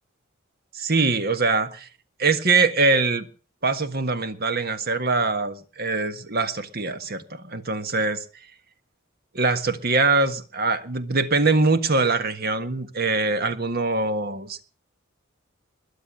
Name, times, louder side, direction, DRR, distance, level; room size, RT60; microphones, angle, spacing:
voice 1, 0.7-1.9 2.2-3.3 3.6-8.2 9.3-14.6, right 3 dB, 45° right, 10 dB, 1.6 m, -23 dB
21.5 x 7.8 x 7.7 m, 0.39 s
head